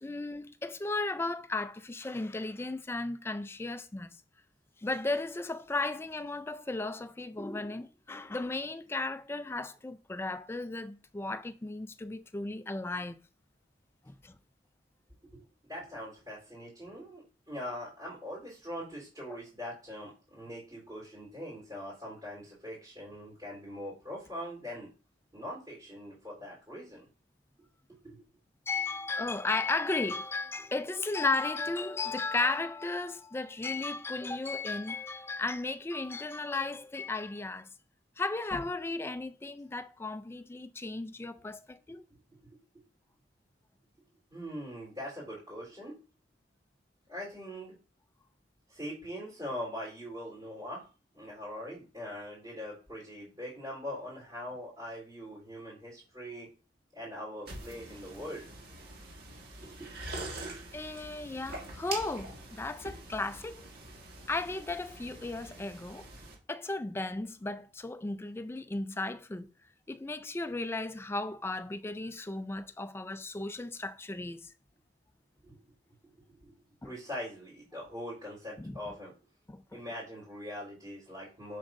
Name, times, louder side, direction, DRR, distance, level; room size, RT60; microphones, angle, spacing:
voice 1, 0.0-4.2 4.8-13.2 14.1-14.3 28.7-37.7 38.2-42.0 60.7-63.7 64.3-66.1 66.5-69.5 69.9-74.5 76.8-76.9 78.6-78.7 79.5-79.6, left 3 dB, 15° left, 0.3 m, -35 dB
voice 2, 15.2-24.9 25.3-27.1 28.0-28.2 42.4-42.6 44.3-45.9 47.1-47.7 48.7-50.8 51.1-56.5 56.9-58.4 58.8-59.0 59.8-59.9 75.4-75.6 76.3-76.5 76.8-79.1 79.7-81.6, equal, 20° right, 3.4 m, -42 dB
sound 1, 57.5-66.3, right 2 dB, 55° right, 1.6 m, -44 dB
7.3 x 6.2 x 2.5 m
head